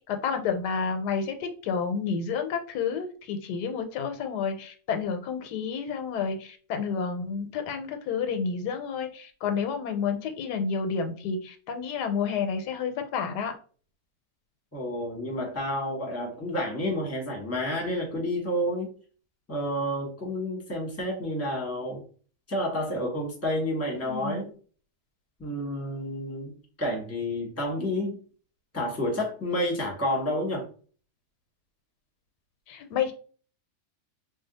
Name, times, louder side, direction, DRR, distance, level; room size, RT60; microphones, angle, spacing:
voice 1, 0.1-13.5 23.9-24.5 32.7-33.1, left 6 dB, 80° left, 6 dB, 1.2 m, -30 dB
voice 2, 14.7-18.9 19.5-22.0 22.5-24.5 25.4-28.2 28.7-30.7, left 1 dB, 10° left, -2 dB, 0.9 m, -30 dB
2.7 x 2.3 x 3.9 m, 0.40 s
omnidirectional pair, 1.7 m